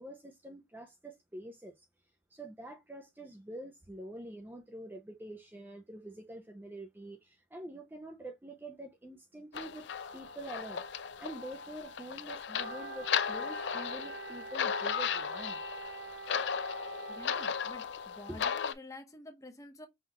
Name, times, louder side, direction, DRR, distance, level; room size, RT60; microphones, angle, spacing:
voice 1, 0.0-1.7 2.3-10.8 11.2-15.6 18.3-18.4, right 1 dB, 10° right, 0.5 m, -46 dB
sound 1, 9.5-18.7, left 7 dB, 90° left, 0.4 m, -36 dB
Wind instrument woodwind instrument, 12.5-17.7, right 7 dB, 75° right, 0.3 m, -47 dB
voice 2, 17.1-19.9, left 1 dB, 20° left, 0.9 m, -49 dB
5.6 x 2.3 x 2.9 m
head